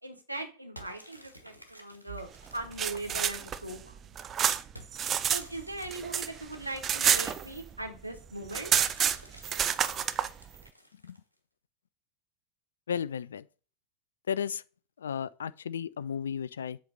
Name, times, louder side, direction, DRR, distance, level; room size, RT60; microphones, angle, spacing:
voice 1, 0.0-3.8 4.0-4.2 5.3-8.7, right 2 dB, 85° right, 1.5 m, -39 dB
sound 1, 0.8-3.7 4.8-7.7 8.7-11.4, right 1 dB, 85° left, 1.3 m, -53 dB
sound 2, 2.5-5.4 5.7-7.9 8.2-8.3 8.5-10.3, right 8 dB, 25° right, 0.4 m, -28 dB
voice 2, 12.9-13.4 14.3-14.6 15.0-16.8, left 7 dB, 65° left, 0.3 m, -34 dB
7.8 x 3.3 x 5.5 m
figure-of-eight pair, 90°, 0 cm